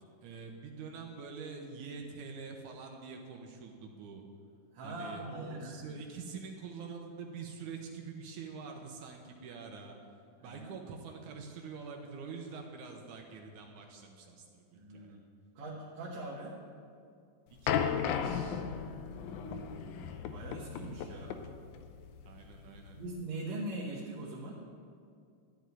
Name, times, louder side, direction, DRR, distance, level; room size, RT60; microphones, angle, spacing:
voice 1, 0.2-4.2 4.8-10.0 10.4-15.1 17.5-18.6 21.0-21.3 22.3-23.0, right 5 dB, 80° right, 2 dB, 2.4 m, -46 dB
voice 2, 4.7-5.9 10.4-10.7 14.7-15.2 15.6-16.6 19.1-21.4 23.0-24.6, right 2 dB, 65° right, -4 dB, 2.5 m, -42 dB
sound 1, 17.7-23.1, left 8 dB, 80° left, 2.1 m, -36 dB
13.0 x 5.3 x 9.1 m, 2.4 s
omnidirectional pair, 3.5 m